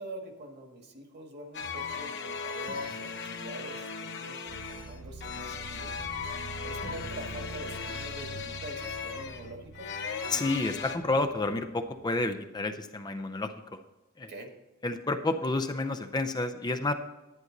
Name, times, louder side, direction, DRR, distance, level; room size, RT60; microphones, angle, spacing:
voice 1, 0.0-5.9 6.6-9.9 14.3-14.5, right 1 dB, 50° right, 4 dB, 1.9 m, -44 dB
sound 1, 1.5-11.0, left 5 dB, 55° left, 1.0 m, -37 dB
sound 2, 4.5-12.4, right 3 dB, 90° right, 0.8 m, -46 dB
voice 2, 10.3-13.5 14.2-14.3 14.8-16.9, left 2 dB, 20° left, 7 dB, 0.5 m, -30 dB
11.0 x 9.6 x 3.9 m, 1.1 s
head